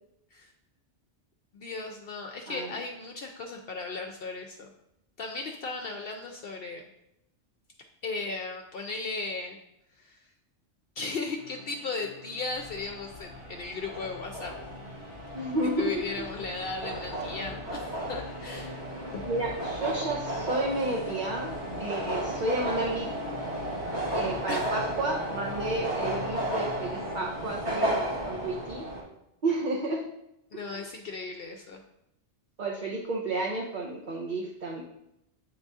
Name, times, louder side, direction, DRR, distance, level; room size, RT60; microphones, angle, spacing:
voice 1, 1.5-4.7 5.2-6.9 8.0-9.6 10.0-10.2 11.0-14.6 15.8-18.8 19.1-19.2 24.5-24.8 30.5-31.8, left 3 dB, 60° left, 3 dB, 0.7 m, -36 dB
voice 2, 2.5-2.8 15.3-16.3 19.2-23.1 24.1-28.9 29.4-30.0 30.5-30.8 32.6-34.8, right 2 dB, 45° right, -2 dB, 0.9 m, -31 dB
sound 1, 11.4-27.2, left 2 dB, 90° right, 3.3 m, -46 dB
sound 2, 12.5-29.0, right 1 dB, 70° right, 2.1 m, -34 dB
8.5 x 4.0 x 3.5 m, 0.84 s
omnidirectional pair, 1.2 m